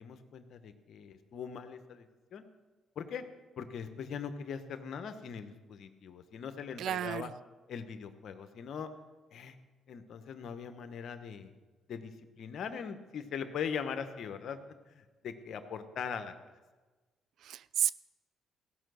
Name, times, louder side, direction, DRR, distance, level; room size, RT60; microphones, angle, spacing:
voice 1, 0.0-2.1 2.3-2.4 3.0-3.2 3.6-7.3 7.7-8.9 9.3-9.6 9.9-11.5 11.9-14.6 14.9-16.3, left 7 dB, 65° left, 9 dB, 1.0 m, -41 dB
voice 2, 6.8-7.3 17.4-17.9, right 11 dB, 70° right, 18 dB, 0.4 m, -32 dB
16.0 x 5.6 x 6.4 m, 1.3 s
supercardioid pair, 70°, 0 cm